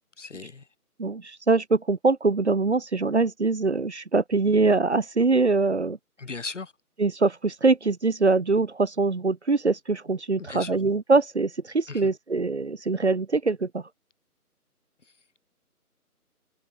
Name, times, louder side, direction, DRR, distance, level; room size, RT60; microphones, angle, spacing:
voice 1, 0.2-0.7 6.2-6.7 10.4-10.8 11.9-12.1, left 4 dB, 50° left, 1.1 m, -37 dB
voice 2, 1.0-6.0 7.0-13.8, right 3 dB, 45° right, 0.8 m, -23 dB
figure-of-eight pair, 165°, 46 cm